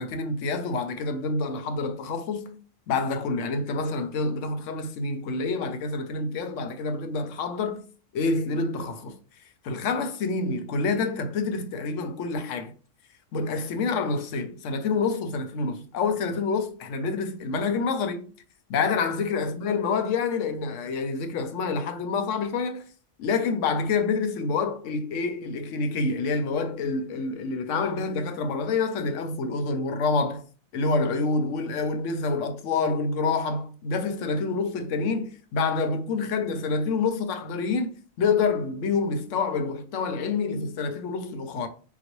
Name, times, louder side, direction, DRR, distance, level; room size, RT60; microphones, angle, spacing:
voice 1, 0.0-2.6 2.9-7.8 8.1-9.2 9.6-12.7 13.3-18.3 18.7-22.9 23.2-30.4 30.7-41.7, left 4 dB, 80° left, 0.9 m, -27 dB
3.9 x 2.3 x 2.9 m
omnidirectional pair, 1.3 m